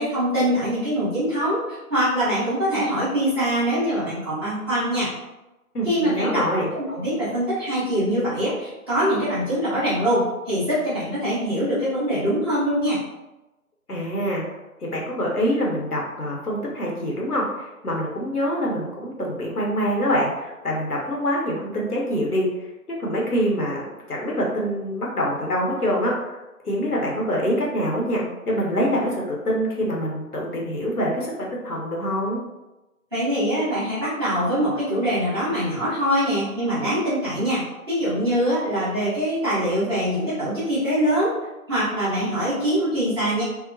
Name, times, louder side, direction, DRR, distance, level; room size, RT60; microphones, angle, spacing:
voice 1, 0.0-5.1 5.8-6.4 6.7-13.0 33.1-41.3 41.7-43.4, equal, 15° right, -14 dB, 1.0 m, -23 dB
voice 2, 5.7-6.7 13.9-14.4 14.8-26.4 26.6-32.4, equal, 85° left, -2 dB, 1.0 m, -25 dB
2.8 x 2.0 x 2.6 m, 1.0 s
figure-of-eight pair, 145°, 44 cm